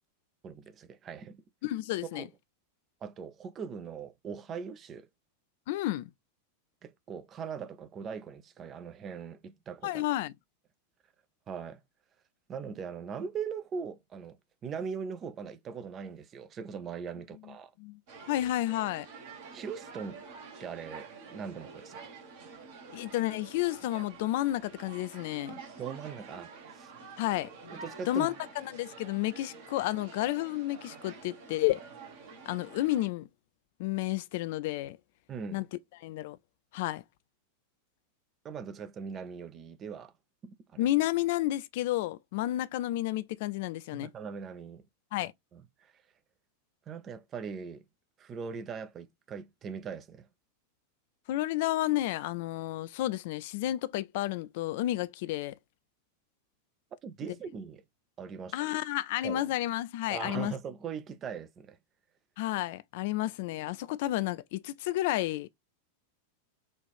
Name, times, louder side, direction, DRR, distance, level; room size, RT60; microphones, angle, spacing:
voice 1, 0.4-1.4 2.1-2.3 3.0-5.1 6.8-10.0 11.5-11.8 12.5-17.7 19.5-20.2 20.6-22.1 25.8-27.0 27.7-28.3 35.3-35.7 38.4-40.1 40.4-40.9 43.9-44.8 45.5-46.0 46.9-47.8 48.2-50.3 57.0-57.8 58.2-58.6 59.2-59.5 60.1-61.8, right 6 dB, 25° right, 0.5 m, -40 dB
voice 2, 1.6-2.3 5.7-6.1 9.8-10.3 17.8-18.0 18.3-19.1 22.9-25.6 27.2-27.7 28.1-31.8 32.5-33.3 33.8-35.0 35.5-35.7 36.0-36.4 36.7-37.0 40.8-44.1 45.1-45.3 51.3-55.6 58.5-60.5 62.4-65.5, left 15 dB, 50° left, 0.3 m, -31 dB
sound 1, 18.1-33.1, right 4 dB, 50° right, 1.3 m, -48 dB
4.1 x 2.5 x 3.3 m
figure-of-eight pair, 90°, 0 cm